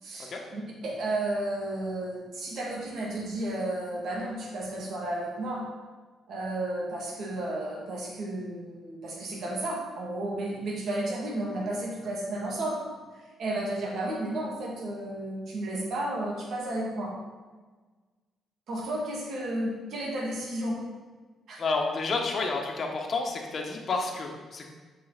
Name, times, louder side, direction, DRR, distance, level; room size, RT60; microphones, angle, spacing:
voice 1, 0.0-5.7 6.3-12.8 13.4-17.1 18.7-20.8 21.5-21.6, right 1 dB, 65° right, -2 dB, 2.3 m, -32 dB
voice 2, 21.6-24.6, left 3 dB, 45° left, 1 dB, 1.4 m, -30 dB
7.6 x 5.7 x 4.1 m, 1.4 s
cardioid pair, 90°, 0 cm